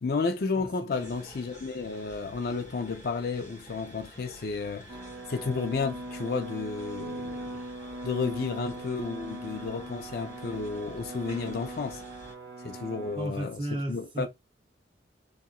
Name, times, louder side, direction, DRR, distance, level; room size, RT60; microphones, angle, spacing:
voice 1, 0.0-4.9 5.3-7.6 8.0-12.0 12.6-14.3, left 4 dB, 55° left, 0.4 m, -32 dB
voice 2, 0.5-1.1 13.1-14.3, right 1 dB, 25° right, 0.7 m, -35 dB
sound 1, 0.9-12.3, equal, 15° left, 1.3 m, -50 dB
sound 2, 4.9-13.2, right 1 dB, 85° right, 0.8 m, -40 dB
2.8 x 2.4 x 2.3 m
head